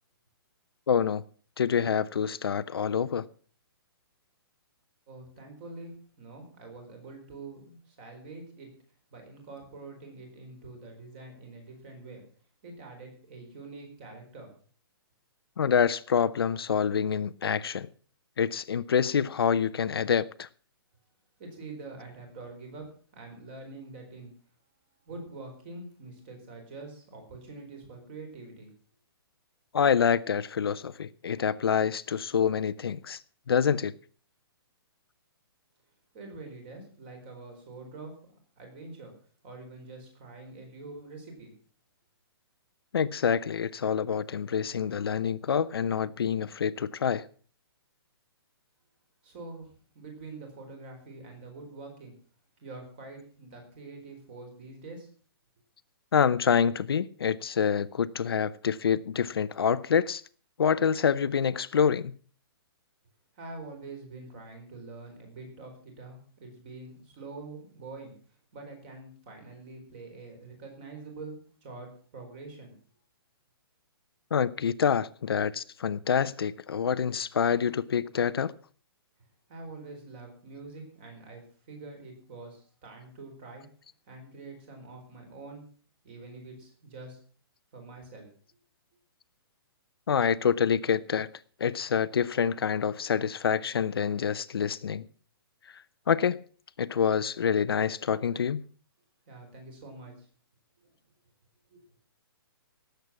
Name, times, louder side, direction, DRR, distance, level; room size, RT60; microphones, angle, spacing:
voice 1, 0.9-1.2 1.6-3.3 15.6-17.9 18.4-20.5 29.7-33.2 33.5-33.9 42.9-47.3 56.1-60.2 60.6-62.2 74.3-78.5 90.1-91.3 91.6-95.0 95.7-96.4 96.8-98.6, left 7 dB, 70° left, 0.7 m, -26 dB
voice 2, 5.1-8.7 9.1-12.2 12.6-14.5 21.4-24.3 25.0-28.7 36.1-38.2 38.6-39.1 39.4-41.6 49.2-52.1 52.6-55.1 63.3-68.1 68.5-72.7 79.5-83.7 84.1-85.7 86.0-87.2 87.7-88.3 99.3-100.3 101.7-101.8, right 3 dB, 25° right, 4.5 m, -45 dB
18.0 x 8.1 x 6.0 m
hypercardioid pair, 180°, 13 cm